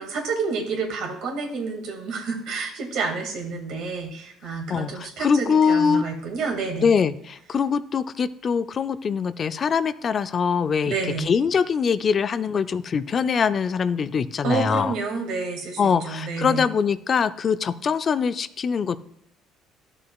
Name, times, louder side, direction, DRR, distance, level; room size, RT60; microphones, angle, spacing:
voice 1, 0.0-6.9 10.8-11.3 14.4-16.7, right 4 dB, 75° right, 2 dB, 2.0 m, -29 dB
voice 2, 4.7-6.0 6.8-14.9 15.8-19.0, left 6 dB, 40° left, 13 dB, 0.4 m, -23 dB
12.5 x 6.5 x 2.3 m, 0.75 s
cardioid pair, 105°, 0 cm